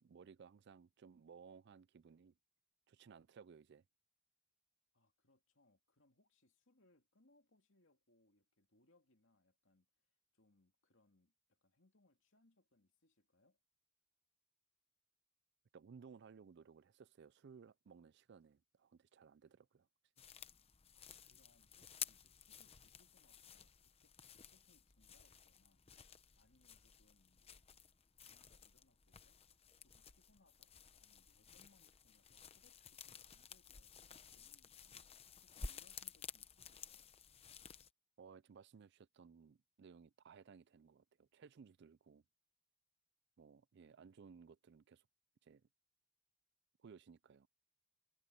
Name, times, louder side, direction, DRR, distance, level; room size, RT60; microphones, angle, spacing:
voice 1, 0.0-2.3 2.9-3.8 15.7-19.9 38.2-42.2 43.4-45.1 45.4-45.7 46.8-47.5, right 6 dB, 55° right, 0.4 m, -60 dB
voice 2, 4.9-13.6 20.9-25.9 26.3-27.6 28.3-29.4 29.8-35.1 35.4-37.1, left 2 dB, 65° left, 2.7 m, -75 dB
sound 1, 20.2-37.9, left 6 dB, 30° left, 0.9 m, -54 dB
head